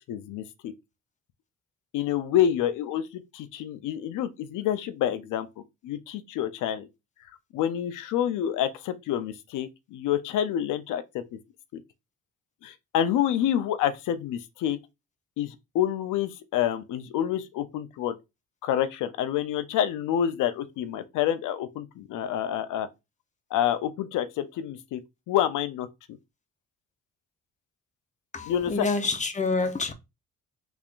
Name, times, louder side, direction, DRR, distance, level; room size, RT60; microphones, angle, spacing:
voice 1, 0.1-0.7 1.9-5.5 5.8-6.9 7.5-11.2 11.7-11.8 12.6-14.8 15.4-18.1 18.6-22.9 23.5-25.0 25.3-25.9 28.5-28.9, left 10 dB, 85° left, 0.6 m, -28 dB
voice 2, 28.3-29.9, left 3 dB, 25° left, 0.7 m, -27 dB
3.5 x 3.4 x 2.5 m
cardioid pair, 90°, 30 cm